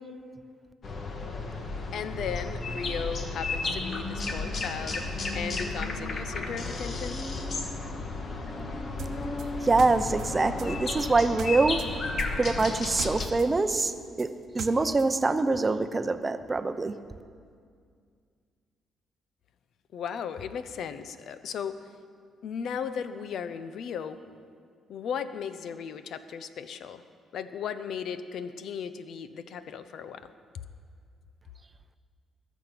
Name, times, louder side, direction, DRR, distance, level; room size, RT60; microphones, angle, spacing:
sound 1, 0.8-13.3, left 3 dB, 50° left, 1.5 m, -33 dB
voice 1, 1.9-5.1 5.3-7.2 19.9-21.8 22.4-24.2 24.9-27.0 27.3-30.3, left 7 dB, 70° left, 12 dB, 0.7 m, -36 dB
sound 2, 9.0-11.9 12.2-15.1, right 7 dB, 70° right, 0.8 m, -41 dB
voice 2, 9.6-11.8 12.4-16.9, right 3 dB, 25° right, 10 dB, 0.7 m, -25 dB
20.5 x 7.2 x 6.0 m, 2.1 s
cardioid pair, 90°, 0 cm